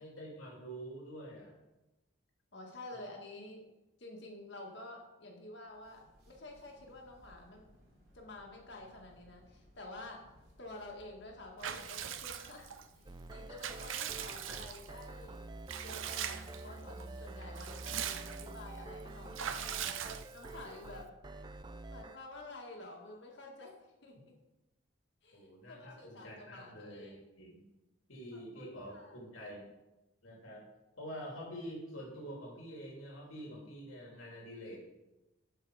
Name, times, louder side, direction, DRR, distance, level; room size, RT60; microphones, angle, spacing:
voice 1, 0.0-1.6 2.9-3.0 17.5-17.7 25.3-27.7 28.1-29.7 30.2-30.6 31.0-34.8, equal, 90° left, -2 dB, 2.8 m, -47 dB
voice 2, 2.5-3.7 4.0-7.7 8.1-10.2 10.6-15.4 15.8-21.1 21.9-23.8 24.0-24.4 25.2-27.2 28.3-29.2, left 2 dB, 60° left, 0 dB, 1.8 m, -50 dB
sound 1, 5.6-16.1, left 1 dB, 50° right, 3.2 m, -63 dB
Water / Bathtub (filling or washing) / Liquid, 11.6-12.8 13.3-15.0 15.7-16.6 17.0-17.1 17.4-18.6 19.3-20.6, right 9 dB, 75° right, 0.6 m, -41 dB
sound 2, 13.1-22.2, right 2 dB, 20° right, 0.4 m, -47 dB
12.5 x 5.2 x 4.8 m, 1.0 s
head